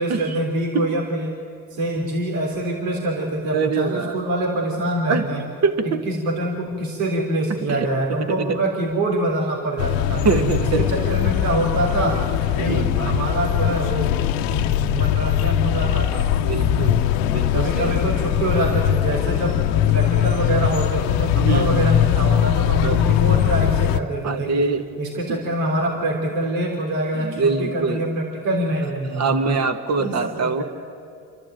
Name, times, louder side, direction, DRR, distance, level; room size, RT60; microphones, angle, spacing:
voice 1, 0.0-1.4 1.7-5.4 5.8-10.2 10.6-12.2 12.5-14.1 14.5-16.3 16.6-16.9 17.5-19.6 19.9-24.7 25.0-29.6 30.0-30.6, right 1 dB, 90° right, -2 dB, 3.4 m, -25 dB
voice 2, 3.5-4.1 5.1-5.3 5.6-6.0 7.7-7.9 8.2-8.6 10.1-10.9 12.6-13.2 16.4-18.0 21.4-21.9 22.8-23.1 24.2-24.9 25.3-25.4 27.2-28.0 29.1-30.6, right 4 dB, 40° right, 8 dB, 1.7 m, -24 dB
sound 1, 9.8-24.0, left 11 dB, 80° left, 0.8 m, -21 dB
29.0 x 12.0 x 9.1 m, 2.4 s
supercardioid pair, 90°, 39 cm